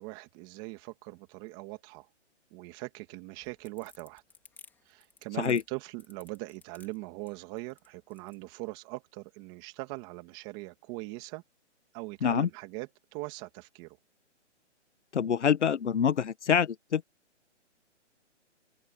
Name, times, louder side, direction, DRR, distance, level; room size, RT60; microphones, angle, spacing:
voice 1, 0.0-2.1 2.5-4.2 4.8-11.4 11.9-14.0, right 22 dB, 15° right, 2.5 m, -41 dB
sound 1, 3.3-8.4, left 5 dB, 5° left, 3.1 m, -57 dB
voice 2, 15.1-17.0, left 7 dB, 70° left, 1.3 m, -26 dB
open air
hypercardioid pair, 165°, 36 cm